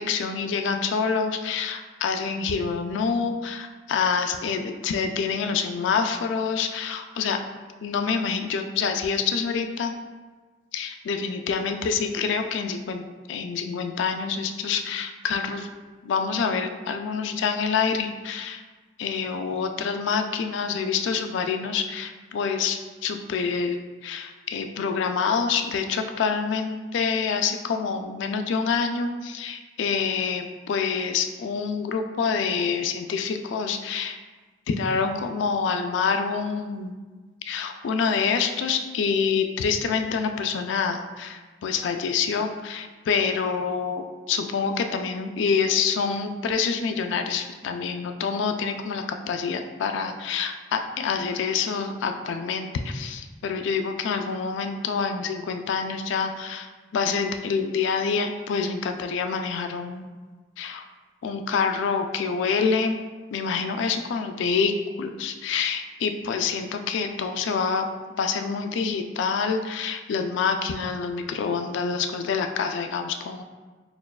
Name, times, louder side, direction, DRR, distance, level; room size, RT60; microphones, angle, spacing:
voice 1, 0.0-7.4 7.8-10.0 10.7-15.7 16.0-18.6 19.0-34.2 34.7-36.9 37.5-60.1 60.6-60.9 61.2-63.0 63.3-67.9 68.2-73.4, left 5 dB, 65° left, 6 dB, 0.3 m, -27 dB
6.0 x 2.3 x 2.3 m, 1.4 s
head